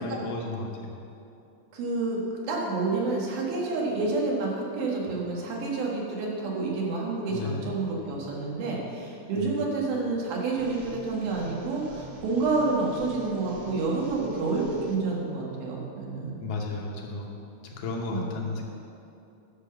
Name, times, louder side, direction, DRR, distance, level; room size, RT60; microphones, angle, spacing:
voice 1, 0.0-0.9 7.3-7.6 9.3-9.5 16.4-17.4 17.6-18.6, left 3 dB, 75° left, -1 dB, 2.5 m, -33 dB
voice 2, 1.7-2.2 2.5-16.4 18.1-18.3, right 3 dB, 85° right, -2 dB, 3.4 m, -29 dB
sound 1, 10.6-15.0, right 3 dB, 70° right, 1.4 m, -47 dB
10.0 x 5.8 x 6.8 m, 2.7 s
omnidirectional pair, 4.1 m